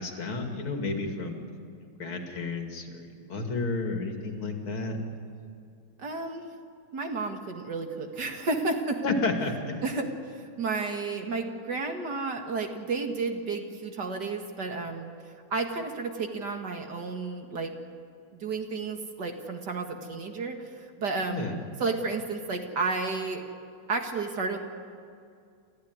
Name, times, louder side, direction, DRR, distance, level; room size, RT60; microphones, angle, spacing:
voice 1, 0.0-1.4 2.0-5.0 9.0-9.7 21.3-21.6, left 3 dB, 90° left, 3 dB, 3.3 m, -31 dB
voice 2, 6.0-6.5 6.9-9.0 9.8-10.1 10.3-15.1 15.5-17.7 18.4-21.5 21.8-23.4 23.9-24.6, right 3 dB, 55° right, 4 dB, 2.4 m, -32 dB
29.0 x 14.0 x 9.7 m, 2.3 s
omnidirectional pair, 2.3 m